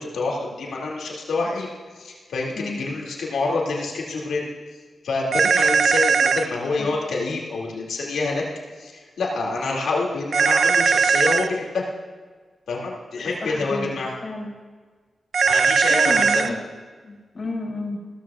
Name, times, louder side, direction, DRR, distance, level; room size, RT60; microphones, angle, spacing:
voice 1, 0.0-1.7 2.0-4.5 5.0-8.4 8.8-11.8 12.7-14.1 15.5-16.4, left 3 dB, 85° left, -3 dB, 2.4 m, -27 dB
sound 1, 5.3-6.5 10.3-11.5 15.3-16.5, right 5 dB, 70° right, 0.4 m, -18 dB
voice 2, 13.4-14.5 15.4-16.6 17.0-18.0, left 2 dB, 50° left, -2 dB, 3.4 m, -32 dB
16.0 x 13.5 x 2.4 m, 1.4 s
cardioid pair, 55°, 0 cm